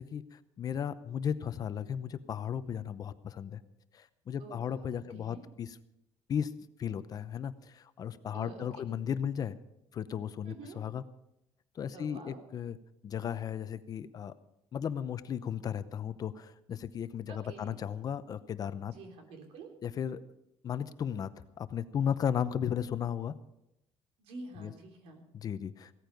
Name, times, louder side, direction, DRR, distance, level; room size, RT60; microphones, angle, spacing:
voice 1, 0.0-3.6 3.9-5.8 6.3-6.5 6.8-9.6 9.9-11.0 11.8-12.8 13.0-14.3 14.7-18.9 19.8-20.2 20.6-21.3 21.6-23.3 24.5-24.7 25.3-25.9, left 8 dB, 40° left, 13 dB, 0.7 m, -35 dB
voice 2, 4.4-5.4 8.3-8.7 10.4-10.8 11.9-12.4 17.3-17.7 18.9-19.7 24.2-25.3, right 3 dB, 85° right, 3 dB, 3.5 m, -48 dB
17.0 x 14.0 x 5.3 m, 0.85 s
cardioid pair, 150°, 10 cm